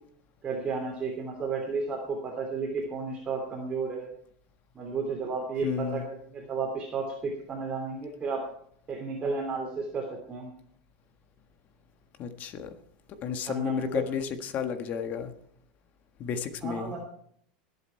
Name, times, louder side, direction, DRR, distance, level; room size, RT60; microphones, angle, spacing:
voice 1, 0.4-4.1 4.7-8.5 8.9-10.5 13.5-14.0 16.6-17.0, right 4 dB, 25° right, -1 dB, 2.9 m, -33 dB
voice 2, 5.6-6.0 12.2-12.7 13.2-15.3 16.2-16.9, left 7 dB, 40° left, 8 dB, 1.6 m, -32 dB
20.5 x 8.3 x 4.5 m, 0.63 s
supercardioid pair, 135°, 4 cm